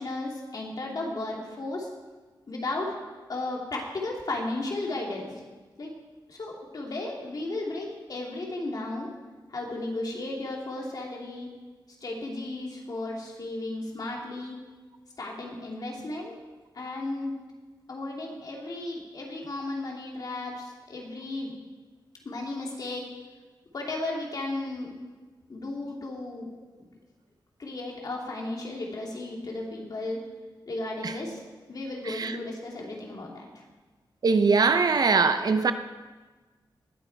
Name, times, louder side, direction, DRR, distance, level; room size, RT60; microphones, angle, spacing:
voice 1, 0.0-1.9 2.5-3.0 3.3-5.3 5.8-5.9 6.3-9.1 9.5-11.5 12.0-14.6 15.2-16.4 16.7-17.3 17.9-21.5 22.2-23.0 23.7-24.9 25.5-26.5 26.8-26.9 27.6-30.2 30.7-31.4 31.7-33.5, left 2 dB, 50° left, -1 dB, 2.6 m, -34 dB
voice 2, 34.2-35.7, right 4 dB, 55° right, 9 dB, 0.6 m, -21 dB
20.0 x 8.1 x 4.6 m, 1.3 s
wide cardioid pair, 145°, 8 cm